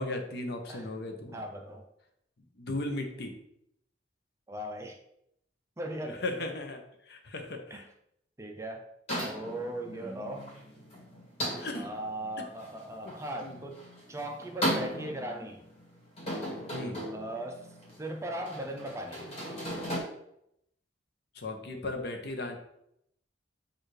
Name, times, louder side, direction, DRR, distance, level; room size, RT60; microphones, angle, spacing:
voice 1, 0.0-1.4 2.6-3.3 6.0-6.8 7.1-7.8 9.9-10.1 11.6-11.9 12.4-12.5 13.0-13.1 13.4-13.6 16.7-17.0 21.4-22.6, left 2 dB, 60° left, 4 dB, 0.7 m, -36 dB
voice 2, 1.3-1.8 4.5-5.0 5.8-6.3 7.7-7.8 8.4-8.9 9.2-10.5 11.7-13.8 14.1-15.6 17.1-17.7 18.0-19.2, right 1 dB, 15° right, 3 dB, 0.4 m, -38 dB
sound 1, 9.1-20.0, equal, 35° left, 1.6 m, -37 dB
6.6 x 2.5 x 3.1 m, 0.76 s
head